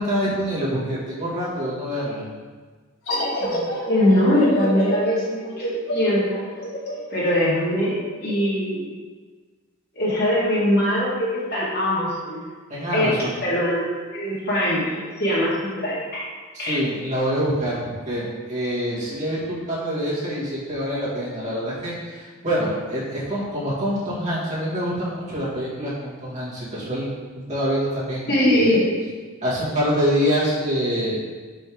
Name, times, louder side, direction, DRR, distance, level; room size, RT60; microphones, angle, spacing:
voice 1, 0.0-2.2 12.7-13.3 16.5-27.1 27.5-28.8 29.4-31.2, equal, 35° right, -9 dB, 1.9 m, -25 dB
sound 1, 3.1-8.4, equal, 85° left, 1.6 m, -28 dB
voice 2, 3.4-6.4 7.1-7.9 8.2-8.9 10.0-12.4 12.9-16.3 16.6-16.8 28.3-28.9, left 1 dB, 50° left, -7 dB, 1.9 m, -22 dB
5.5 x 5.3 x 3.6 m, 1.4 s
head